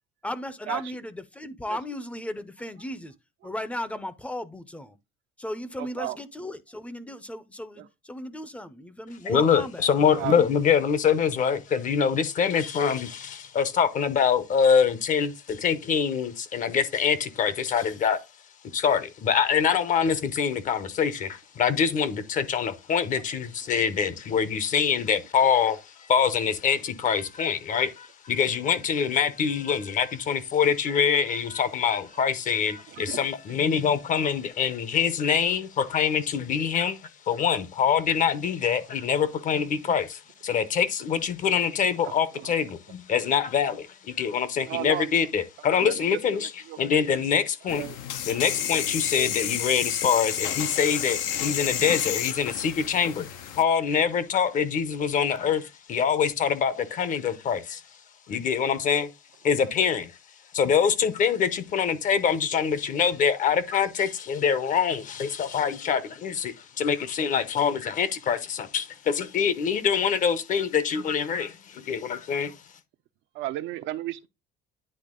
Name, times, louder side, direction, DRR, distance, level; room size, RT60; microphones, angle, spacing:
voice 1, 0.2-3.1 3.4-5.0 5.4-10.5, left 1 dB, 5° left, 0.6 m, -36 dB
voice 2, 5.7-6.2 7.8-7.9 10.2-10.4 32.9-33.3 42.0-42.1 42.4-42.5 44.6-45.1 45.8-47.0 47.7-48.0 73.3-74.3, right 15 dB, 65° right, 0.7 m, -34 dB
voice 3, 9.2-18.2 18.7-37.0 37.3-46.5 46.8-47.8 48.3-57.8 58.3-59.1 59.4-60.1 60.5-72.5, left 7 dB, 40° left, 0.9 m, -25 dB
sound 1, 47.7-53.6, left 10 dB, 85° left, 1.1 m, -30 dB
10.0 x 3.4 x 3.7 m
cardioid pair, 145°, 20 cm